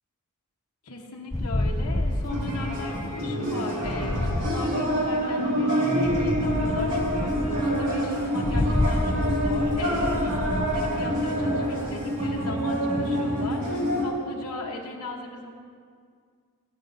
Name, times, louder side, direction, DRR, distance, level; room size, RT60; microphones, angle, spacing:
voice 1, 0.8-10.3 10.7-15.5, left 2 dB, 90° left, -1 dB, 1.0 m, -38 dB
sound 1, 1.3-5.3 6.0-12.4, left 1 dB, 15° left, 0.4 m, -29 dB
sound 2, 2.3-14.1, equal, 75° right, 2.0 m, -26 dB
17.0 x 8.1 x 2.6 m, 2.1 s
head